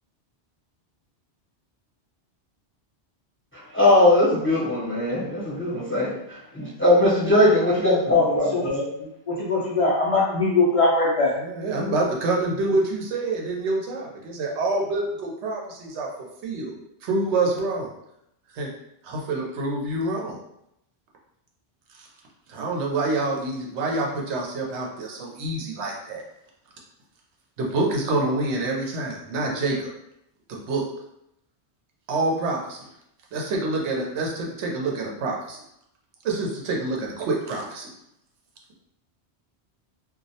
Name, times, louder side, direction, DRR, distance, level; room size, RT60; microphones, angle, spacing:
voice 1, 3.7-8.8, left 1 dB, 15° left, -9 dB, 0.5 m, -20 dB
voice 2, 9.3-11.3, left 3 dB, 65° left, -6 dB, 0.3 m, -21 dB
voice 3, 11.4-16.1 16.4-16.7 17.0-17.9 18.5-18.7 19.0-20.3 21.9-22.1 22.5-26.2 27.6-29.9 30.5-30.8 32.1-32.8 33.3-35.6 36.2-37.9, right 2 dB, 80° right, -1 dB, 0.9 m, -27 dB
2.3 x 2.0 x 2.7 m, 0.79 s
omnidirectional pair, 1.1 m